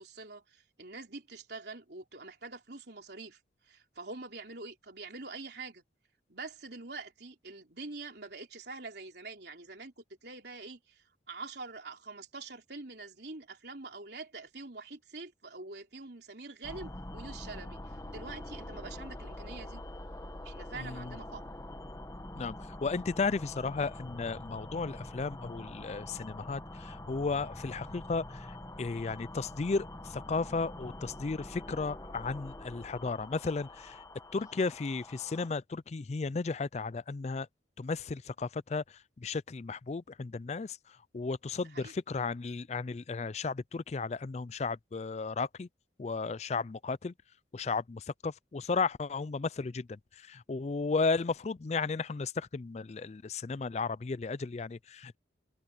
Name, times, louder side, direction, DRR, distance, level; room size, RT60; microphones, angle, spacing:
voice 1, 0.0-3.4 3.7-5.8 6.3-19.8 20.4-21.4 41.6-41.9, right 3 dB, 60° right, 3.7 m, -45 dB
sound 1, 16.6-35.5, left 1 dB, 15° left, 1.0 m, -45 dB
voice 2, 20.7-21.1 22.4-28.5 28.8-34.0 34.3-37.5 37.8-38.8 39.2-40.8 41.1-45.7 46.0-47.1 47.5-50.0 50.3-55.2, left 4 dB, 35° left, 0.4 m, -34 dB
open air
head